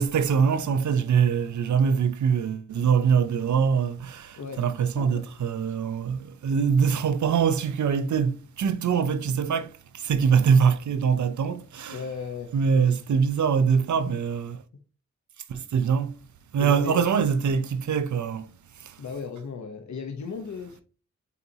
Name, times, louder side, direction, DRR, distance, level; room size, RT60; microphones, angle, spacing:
voice 1, 0.0-12.0 12.5-14.6 15.5-16.2 16.5-18.5 18.8-19.0, right 6 dB, 75° right, 0.6 m, -23 dB
voice 2, 4.4-4.7 4.9-5.2 11.9-13.3 16.6-17.1 19.0-20.8, left 5 dB, 70° left, 0.9 m, -36 dB
8.2 x 4.1 x 2.8 m
cardioid pair, 65°, 29 cm